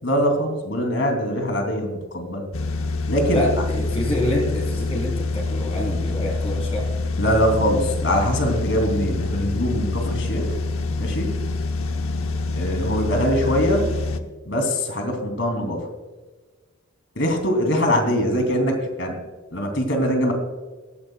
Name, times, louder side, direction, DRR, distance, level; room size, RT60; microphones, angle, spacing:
voice 1, 0.0-2.4 3.1-3.4 7.2-10.6 11.0-11.3 12.5-13.9 14.4-15.9 17.1-19.2 19.5-20.3, equal, 60° left, 4 dB, 3.1 m, -22 dB
sound 1, 2.5-14.2, left 3 dB, 90° left, 1.0 m, -26 dB
voice 2, 3.3-6.9, left 1 dB, 30° left, -3 dB, 4.3 m, -26 dB
17.5 x 14.0 x 2.4 m, 1.3 s
head